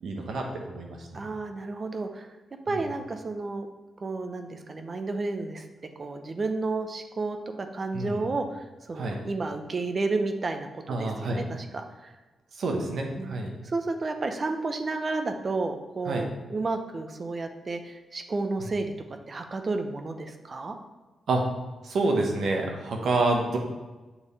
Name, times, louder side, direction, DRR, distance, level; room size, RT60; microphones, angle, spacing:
voice 1, 0.0-1.2 7.9-8.3 8.9-9.2 10.9-11.4 12.6-13.5 16.1-16.2 21.3-21.4 21.8-23.6, right 2 dB, 75° right, 1 dB, 1.1 m, -28 dB
voice 2, 1.1-2.3 2.7-3.7 4.0-5.7 6.0-12.1 13.2-13.4 13.6-18.9 19.3-20.8, right 3 dB, 45° right, 6 dB, 0.7 m, -31 dB
7.2 x 3.5 x 4.1 m, 1.2 s
cardioid pair, 55°, 0 cm